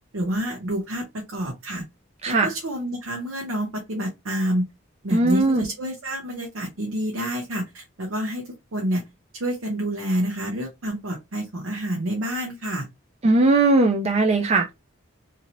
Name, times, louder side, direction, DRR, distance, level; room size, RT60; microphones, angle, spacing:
voice 1, 0.1-1.8 2.3-4.7 5.0-8.4 8.7-9.0 9.3-12.9, right 1 dB, 75° right, 0.8 m, -28 dB
voice 2, 5.1-5.6 13.2-14.7, right 2 dB, 30° right, 0.4 m, -19 dB
2.7 x 2.7 x 2.9 m
head